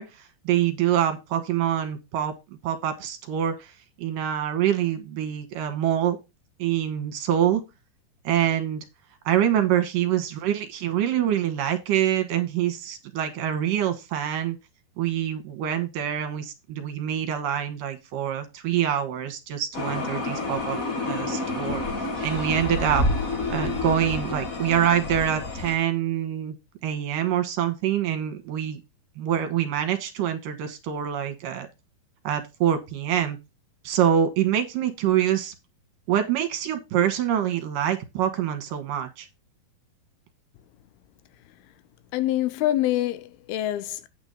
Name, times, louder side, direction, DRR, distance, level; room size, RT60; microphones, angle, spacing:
voice 1, 0.0-2.3 2.6-3.7 4.0-6.2 6.6-7.6 8.2-8.8 9.3-14.6 15.0-20.8 21.1-23.0 23.5-26.5 26.8-28.8 29.2-31.7 32.2-33.4 33.8-35.5 36.1-39.3, right 10 dB, 70° right, 2.8 m, -25 dB
sound 1, 19.7-25.8, left 2 dB, 60° left, 0.8 m, -29 dB
voice 2, 42.1-44.1, left 13 dB, 85° left, 2.7 m, -25 dB
9.1 x 4.9 x 5.3 m
omnidirectional pair, 4.4 m